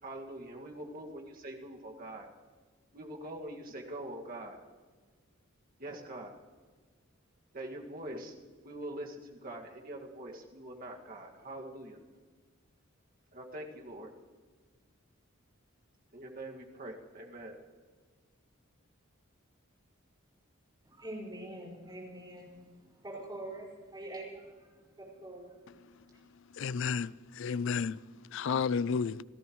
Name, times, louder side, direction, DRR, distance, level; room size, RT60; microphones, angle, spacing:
voice 1, 0.0-2.3 2.9-4.6 5.8-6.4 7.5-8.3 8.6-12.0 13.3-14.1 16.1-17.5, right 1 dB, 45° right, 2.0 m, -44 dB
voice 2, 20.8-25.6 26.1-26.2, right 1 dB, 20° right, 5.4 m, -45 dB
voice 3, 26.6-27.1 27.4-27.9 28.3-29.2, left 6 dB, 60° left, 0.4 m, -31 dB
28.0 x 14.0 x 3.1 m
head